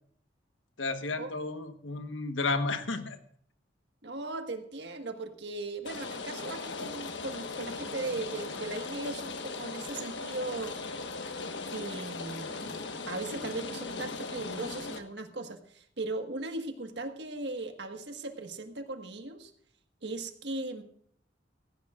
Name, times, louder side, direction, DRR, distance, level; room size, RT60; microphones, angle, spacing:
voice 1, 0.8-3.2, left 3 dB, 90° left, 8 dB, 1.3 m, -32 dB
voice 2, 4.0-10.7 11.7-12.7 13.1-19.5 20.0-20.8, right 2 dB, 65° right, 6 dB, 1.6 m, -38 dB
Rain, 5.9-15.0, left 3 dB, 70° left, 1.4 m, -38 dB
16.5 x 15.5 x 2.5 m, 0.62 s
head